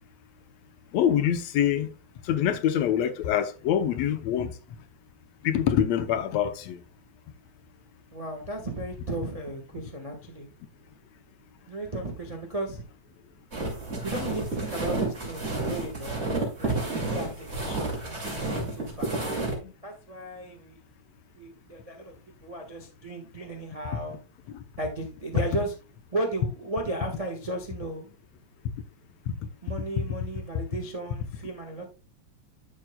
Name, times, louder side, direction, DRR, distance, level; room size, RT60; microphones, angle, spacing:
voice 1, 0.9-1.9 2.2-4.5 5.4-6.8 19.5-19.6 24.5-24.6 29.3-29.4, left 9 dB, 75° left, 1.8 m, -25 dB
voice 2, 8.1-10.5 11.7-12.9 14.0-16.3 16.6-19.1 19.8-20.8 21.4-22.1 22.4-24.2 24.8-25.7 26.1-28.1 29.6-31.9, right 2 dB, 70° right, 0.3 m, -35 dB
sound 1, 13.5-19.5, right 2 dB, 25° right, 2.4 m, -30 dB
11.5 x 7.4 x 2.3 m
omnidirectional pair, 3.3 m